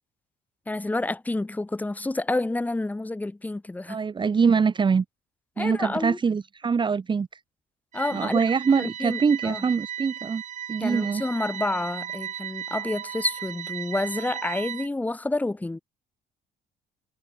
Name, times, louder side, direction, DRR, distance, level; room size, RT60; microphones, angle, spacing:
voice 1, 0.7-4.0 5.6-6.2 7.9-8.4 8.8-9.6 10.8-15.8, left 2 dB, 10° left, 1.0 m, -29 dB
voice 2, 3.9-5.0 5.6-7.4 8.1-10.4 10.7-11.2, right 5 dB, 30° right, 1.3 m, -24 dB
sound 1, 7.9-14.9, right 10 dB, 45° right, 0.9 m, -36 dB
cardioid pair, 110°, 17 cm